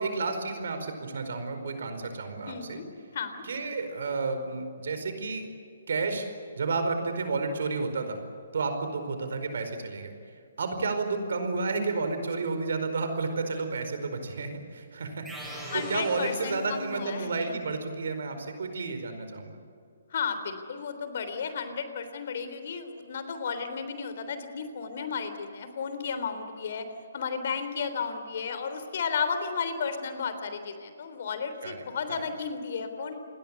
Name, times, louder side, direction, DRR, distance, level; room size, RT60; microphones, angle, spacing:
voice 1, 0.0-2.8 3.4-5.5 5.9-6.2 6.6-8.2 8.5-10.1 10.6-19.6 31.6-31.8, right 3 dB, 55° right, 8 dB, 4.8 m, -31 dB
voice 2, 2.5-2.9 3.1-3.4 15.7-17.6 20.1-26.9 27.1-33.2, left 5 dB, 50° left, 9 dB, 3.5 m, -33 dB
sound 1, 15.2-17.1, equal, 5° right, 6.9 m, -42 dB
28.5 x 21.0 x 8.3 m, 2.4 s
figure-of-eight pair, 135°, 0 cm